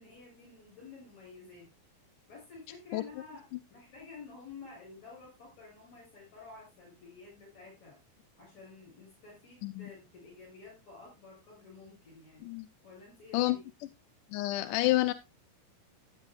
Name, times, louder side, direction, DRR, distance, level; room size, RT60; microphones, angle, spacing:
voice 1, 0.0-1.7 2.3-3.5 3.7-8.0 8.4-12.5 12.8-13.6, left 4 dB, 50° left, 8.5 m, -51 dB
voice 2, 14.3-15.1, left 18 dB, 80° left, 1.9 m, -28 dB
14.5 x 9.7 x 2.4 m
omnidirectional pair, 4.2 m